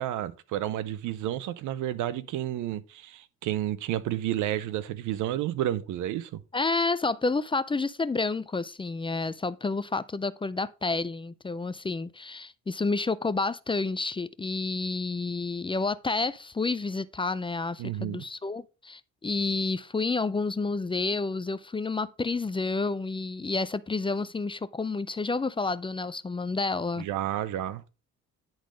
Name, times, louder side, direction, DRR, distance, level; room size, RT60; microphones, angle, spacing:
voice 1, 0.0-6.4 17.8-18.2 27.0-27.8, right 12 dB, 85° right, 0.7 m, -31 dB
voice 2, 6.5-27.1, left 3 dB, 15° left, 0.4 m, -30 dB
10.5 x 3.9 x 5.1 m
cardioid pair, 90°, 30 cm